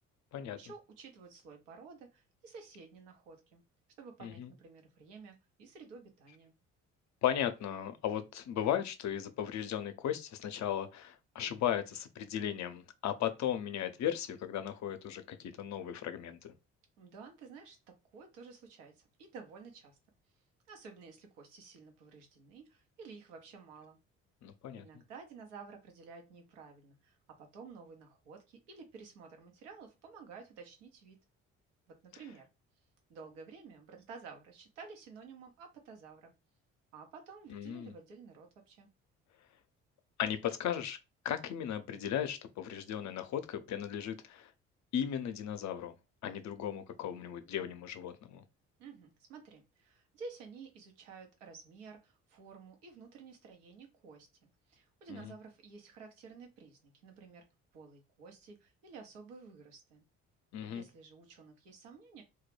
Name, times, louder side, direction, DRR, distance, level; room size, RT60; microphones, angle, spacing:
voice 1, 0.6-3.6 4.0-6.5 17.0-20.0 20.7-24.0 24.7-31.2 31.9-32.5 33.1-36.3 36.9-38.9 48.8-57.5 57.7-60.0 60.7-62.2, right 5 dB, 85° right, 0.8 m, -52 dB
voice 2, 7.2-16.5 24.4-24.8 37.5-37.9 40.2-41.0 41.2-44.5 44.9-46.0 46.2-48.4 55.1-55.3 60.5-60.8, left 10 dB, 50° left, 0.5 m, -36 dB
2.3 x 2.1 x 3.2 m
hypercardioid pair, 50°, 37 cm